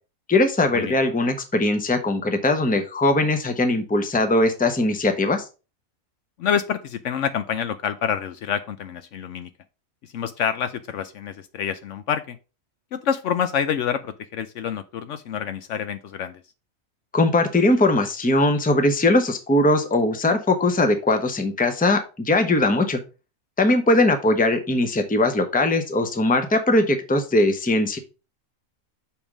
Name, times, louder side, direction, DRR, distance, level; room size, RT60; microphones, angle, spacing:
voice 1, 0.3-5.4 17.1-23.0 23.6-28.0, left 2 dB, 10° left, 6 dB, 0.7 m, -20 dB
voice 2, 6.4-9.5 10.0-12.4 12.9-16.4, left 8 dB, 65° left, 10 dB, 0.8 m, -27 dB
7.1 x 3.6 x 4.9 m, 0.32 s
omnidirectional pair, 1.4 m